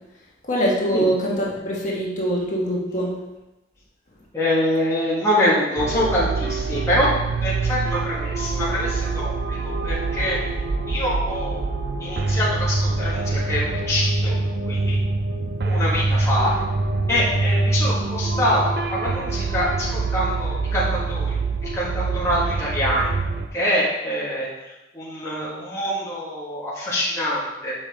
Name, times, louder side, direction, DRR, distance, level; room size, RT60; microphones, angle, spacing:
voice 1, 0.4-3.2, right 1 dB, 45° left, -4 dB, 1.5 m, -23 dB
voice 2, 4.3-7.1 7.4-10.4 10.9-11.6 12.0-14.4 14.7-15.0 15.6-16.5 17.1-21.4 21.7-23.1 23.5-24.5 24.9-27.7, left 1 dB, 15° left, -7 dB, 1.3 m, -25 dB
sound 1, 5.8-23.5, right 3 dB, 65° right, 0.5 m, -25 dB
7.1 x 5.2 x 3.4 m, 1.0 s
head